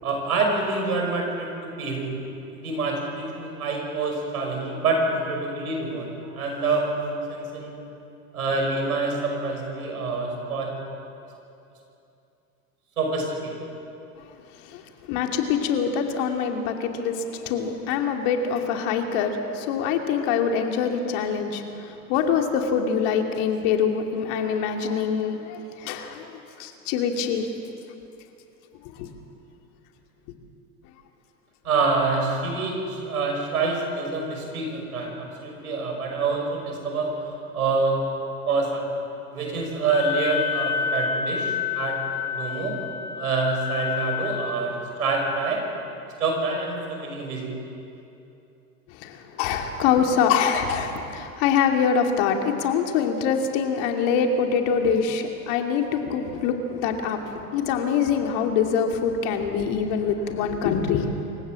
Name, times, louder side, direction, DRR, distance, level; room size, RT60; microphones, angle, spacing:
voice 1, 0.0-1.5 1.8-2.2 2.5-6.1 6.3-7.8 8.3-10.8 13.0-13.5 31.6-38.0 38.5-38.8 39.3-42.7 43.2-44.7 45.0-45.6 46.2-47.5, right 3 dB, 80° right, 1 dB, 5.9 m, -26 dB
voice 2, 15.1-27.5 28.8-29.1 48.9-61.1, left 6 dB, 60° left, 3 dB, 2.7 m, -24 dB
Wind instrument woodwind instrument, 39.9-44.6, left 7 dB, 85° left, 2.2 m, -29 dB
26.0 x 16.0 x 7.5 m, 2.8 s
hypercardioid pair, 85°, 43 cm